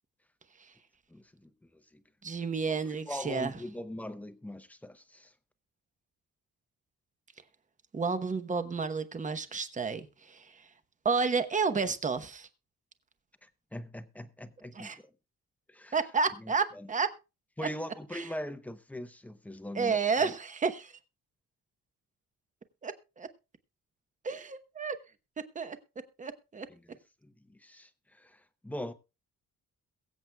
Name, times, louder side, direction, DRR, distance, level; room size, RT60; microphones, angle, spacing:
voice 1, 1.1-2.0 2.7-5.3 13.4-14.9 15.7-16.0 16.4-16.9 17.6-20.0 26.7-27.0 27.2-28.9, left 1 dB, 5° left, 0.7 m, -42 dB
voice 2, 2.2-3.6 7.9-10.7 11.0-12.5 14.7-15.0 15.9-17.1 18.1-18.2 19.7-21.0 22.8-23.3 24.2-25.0 25.5-25.8 26.2-26.7, right 5 dB, 25° right, 1.0 m, -31 dB
22.5 x 7.9 x 2.3 m
cardioid pair, 145°, 30 cm